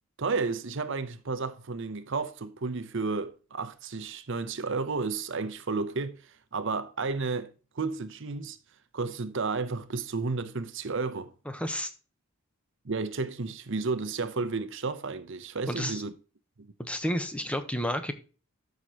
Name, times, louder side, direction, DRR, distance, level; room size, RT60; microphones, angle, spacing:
voice 1, 0.2-6.2 6.5-8.6 8.9-11.3 12.8-16.1 16.6-16.7, right 4 dB, 60° right, 0.8 m, -32 dB
voice 2, 11.5-11.9 15.7-16.0 16.8-18.1, equal, 5° left, 1.0 m, -31 dB
12.5 x 6.5 x 3.0 m
head